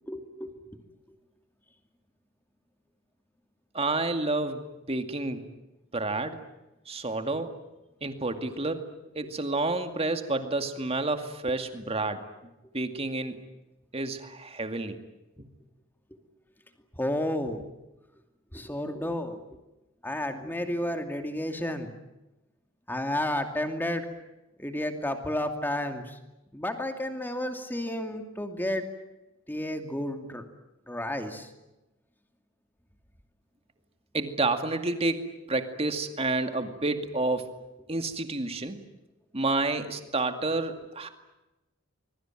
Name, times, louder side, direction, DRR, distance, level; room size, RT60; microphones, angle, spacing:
voice 1, 0.0-0.8 16.9-17.6 18.5-19.4 20.0-21.9 22.9-24.1 24.6-26.2 26.5-28.8 29.5-30.4 30.9-31.5, left 1 dB, 10° left, 6 dB, 2.6 m, -31 dB
voice 2, 3.7-5.5 5.9-6.4 6.9-7.5 8.0-8.9 9.2-12.2 12.7-13.4 13.9-15.0 34.1-37.5 37.9-38.8 39.3-41.1, right 2 dB, 30° right, 7 dB, 2.2 m, -29 dB
25.5 x 22.5 x 9.1 m, 1.0 s
head